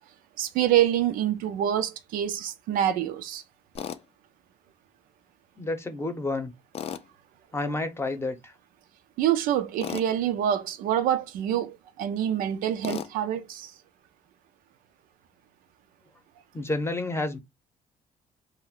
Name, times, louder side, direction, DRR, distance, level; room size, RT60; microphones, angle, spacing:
voice 1, 0.4-3.4 9.2-13.7, right 11 dB, 90° right, 0.4 m, -26 dB
Tools, 3.8-4.0 6.7-7.1 9.8-10.1 12.8-13.1, left 8 dB, 45° left, 0.3 m, -34 dB
voice 2, 5.6-6.5 7.5-8.5 16.5-17.4, left 2 dB, 20° left, 0.7 m, -30 dB
2.4 x 2.1 x 3.5 m
cardioid pair, 90°, 14 cm